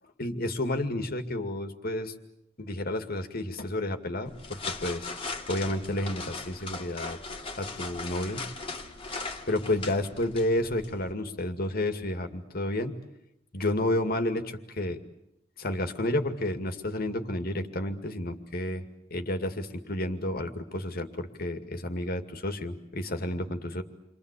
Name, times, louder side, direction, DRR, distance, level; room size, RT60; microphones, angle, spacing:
voice 1, 0.2-2.1 2.6-5.1 5.5-7.2 7.6-8.4 9.5-13.0 13.5-15.0 15.6-18.9 19.1-23.8, left 1 dB, 50° left, 7 dB, 2.3 m, -31 dB
sound 1, 4.2-11.1, left 3 dB, 30° left, 2.5 m, -39 dB
29.5 x 24.0 x 8.4 m, 0.84 s
head